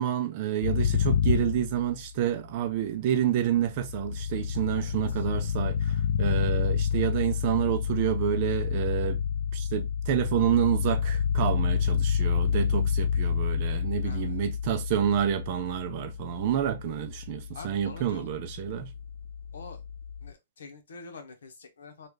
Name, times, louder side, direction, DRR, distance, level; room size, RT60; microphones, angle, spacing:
voice 1, 0.0-9.2 9.5-18.9, right 10 dB, 35° right, 0.6 m, -28 dB
fan back womp, 0.6-2.4 3.4-20.3, left 7 dB, 65° left, 0.3 m, -29 dB
voice 2, 4.7-5.3 14.0-14.4 17.5-18.3 19.5-19.8 20.2-22.1, left 4 dB, 80° left, 1.1 m, -46 dB
3.3 x 2.5 x 3.1 m
hypercardioid pair, 165°, 0 cm